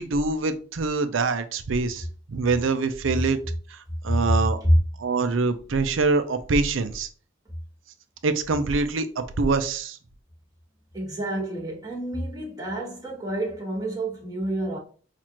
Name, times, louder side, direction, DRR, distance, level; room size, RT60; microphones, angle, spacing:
voice 1, 0.0-3.4 3.7-4.6 5.0-7.1 8.2-10.0, right 3 dB, 75° right, 0.5 m, -25 dB
voice 2, 10.9-14.8, equal, 20° right, 1.2 m, -27 dB
5.9 x 2.5 x 2.9 m
head